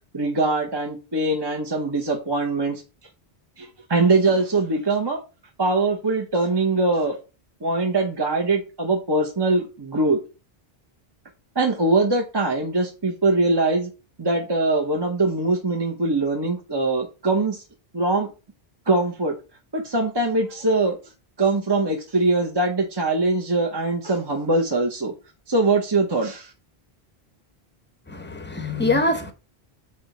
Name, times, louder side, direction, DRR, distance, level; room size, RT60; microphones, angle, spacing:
voice 1, 0.1-2.8 3.6-5.2 5.6-7.2 7.6-10.2 11.5-13.9 14.2-17.6 17.9-18.3 18.9-19.3 19.7-21.0 21.4-25.1 25.5-26.5, right 2 dB, 25° right, 0.9 m, -22 dB
voice 2, 28.1-29.3, left 2 dB, 10° left, 0.8 m, -24 dB
4.9 x 4.0 x 5.9 m
omnidirectional pair, 1.0 m